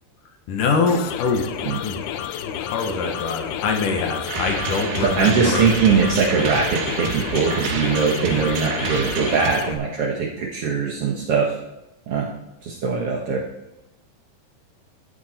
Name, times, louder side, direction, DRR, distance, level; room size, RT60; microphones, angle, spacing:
voice 1, 0.5-1.5 1.8-2.0 2.4-5.7, left 4 dB, 65° left, 4 dB, 2.4 m, -24 dB
sound 1, 0.9-9.7, left 10 dB, 85° left, 2.6 m, -31 dB
sound 2, 4.3-9.5, right 5 dB, 65° right, 2.6 m, -29 dB
voice 2, 5.0-11.5 12.1-12.3 12.6-13.4, right 5 dB, 85° right, -2 dB, 1.3 m, -21 dB
12.0 x 10.5 x 4.3 m, 0.93 s
omnidirectional pair, 4.6 m